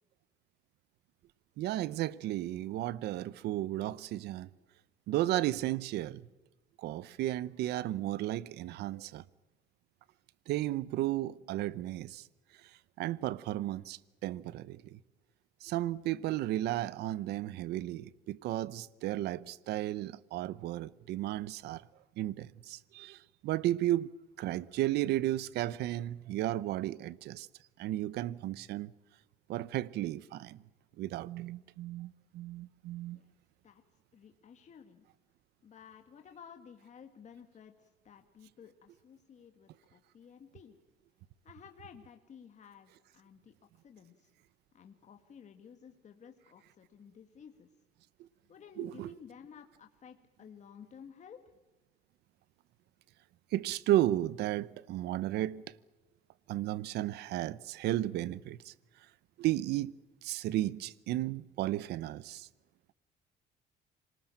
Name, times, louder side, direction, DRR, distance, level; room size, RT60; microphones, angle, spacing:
voice 1, 1.6-4.5 5.1-6.3 6.8-9.2 10.5-12.3 12.5-15.0 15.6-21.8 22.2-24.1 24.4-27.5 27.8-28.9 29.5-30.6 31.0-33.2 48.2-48.3 48.8-49.1 53.5-55.8 56.5-58.7 59.4-59.9 60.2-62.5, right 14 dB, 80° right, 0.8 m, -34 dB
voice 2, 34.1-35.0 35.6-40.7 41.4-43.5 43.8-44.3 44.7-47.7 48.5-51.4, left 7 dB, 45° left, 1.9 m, -54 dB
27.0 x 19.5 x 9.0 m
cardioid pair, 110°, 17 cm